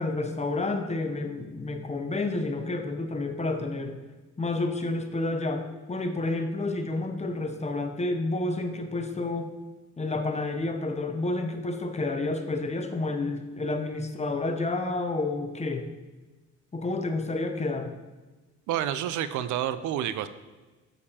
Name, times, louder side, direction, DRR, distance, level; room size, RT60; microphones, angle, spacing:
voice 1, 0.0-4.0 4.4-9.5 10.0-15.9 16.7-17.9, left 2 dB, 20° left, 6 dB, 0.7 m, -30 dB
voice 2, 18.7-20.3, right 11 dB, 75° right, 13 dB, 0.5 m, -29 dB
7.1 x 6.7 x 2.8 m, 1.2 s
cardioid pair, 90°, 30 cm